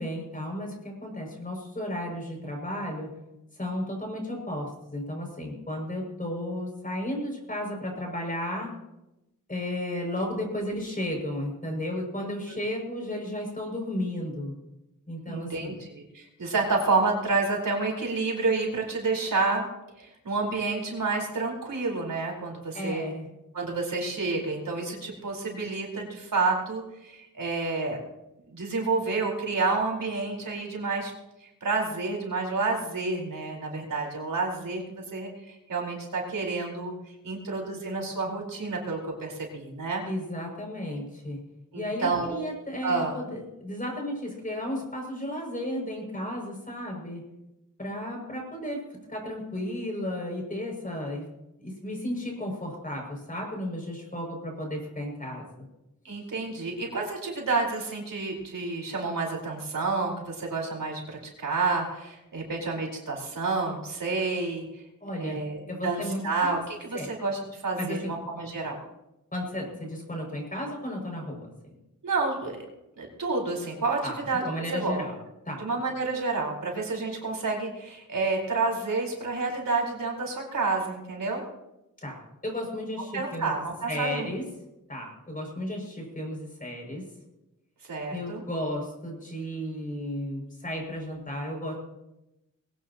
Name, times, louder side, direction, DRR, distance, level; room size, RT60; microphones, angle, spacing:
voice 1, 0.0-3.1 3.6-8.7 9.5-14.5 15.1-15.8 22.7-23.3 40.0-41.4 41.7-47.2 47.8-48.8 49.1-51.2 51.6-55.7 56.1-56.2 65.0-65.4 65.7-66.5 66.9-67.1 67.8-68.1 69.3-71.7 74.0-74.2 74.4-75.1 75.5-75.6 82.0-83.5 83.9-84.4 84.9-87.1 88.1-91.7, left 1 dB, 25° left, 0 dB, 6.7 m, -34 dB
voice 2, 15.3-19.7 20.0-23.0 23.5-28.0 28.5-31.1 31.4-36.9 37.2-40.1 41.7-42.5 42.8-43.1 56.0-64.8 65.2-68.8 72.0-72.6 73.0-74.4 74.7-75.1 75.6-81.4 83.1-84.3 87.9-88.4, right 3 dB, 80° right, -1 dB, 4.7 m, -29 dB
22.0 x 17.5 x 3.0 m, 0.92 s
wide cardioid pair, 110°, 33 cm